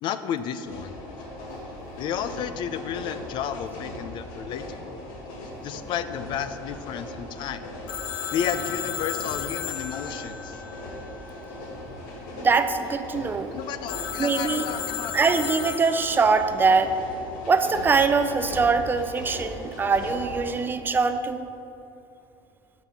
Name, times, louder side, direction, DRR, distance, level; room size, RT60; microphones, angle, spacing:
voice 1, 0.0-1.0 2.0-5.0 5.6-7.6 8.3-10.6 13.5-15.2, left 8 dB, 55° left, 12 dB, 0.5 m, -32 dB
sound 1, 0.6-20.5, left 1 dB, 90° left, 2.0 m, -39 dB
Telephone, 7.9-11.5 13.9-16.4, left 9 dB, 70° left, 0.9 m, -34 dB
voice 2, 12.4-13.6 14.2-14.7 15.1-17.0 17.4-21.5, right 4 dB, 20° right, 10 dB, 0.4 m, -23 dB
11.5 x 6.0 x 5.7 m, 2.7 s
cardioid pair, 135°, 10 cm